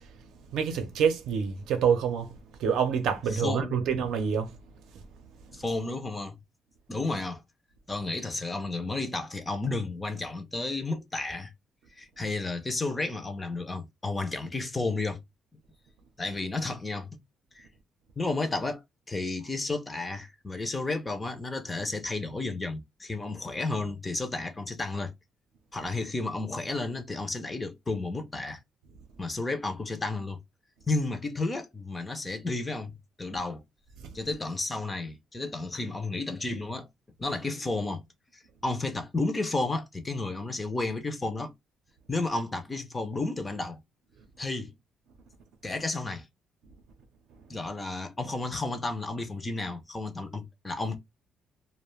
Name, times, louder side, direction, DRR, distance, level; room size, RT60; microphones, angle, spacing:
voice 1, 0.5-2.3 2.6-4.5, right 7 dB, 75° right, 0.6 m, -26 dB
voice 2, 3.3-3.8 5.5-6.4 6.9-7.4 7.9-11.5 12.0-15.2 16.2-17.2 17.5-17.7 18.2-25.1 25.7-28.6 29.2-30.4 30.9-32.9 33.2-33.6 34.1-36.9 37.2-38.0 38.3-41.5 42.1-43.8 44.4-44.7 45.6-46.3 47.5-51.0, left 2 dB, 15° left, 0.3 m, -32 dB
2.4 x 2.1 x 3.0 m
cardioid pair, 175°, 0 cm